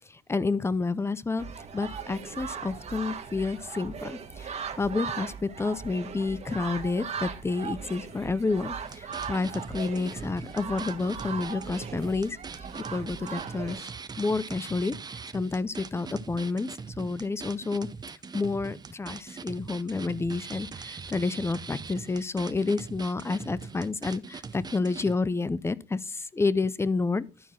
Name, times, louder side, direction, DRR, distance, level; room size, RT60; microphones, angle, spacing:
voice 1, 0.1-1.5 1.7-12.4 12.9-13.9 14.2-14.9 15.3-16.7 17.0-17.9 18.3-27.3, left 3 dB, 15° left, 0.5 m, -29 dB
sound 1, 1.4-13.8, right 6 dB, 40° right, 1.4 m, -39 dB
sound 2, 8.8-25.2, right 5 dB, 25° right, 0.7 m, -41 dB
12.0 x 4.6 x 5.6 m
cardioid pair, 110°, 17 cm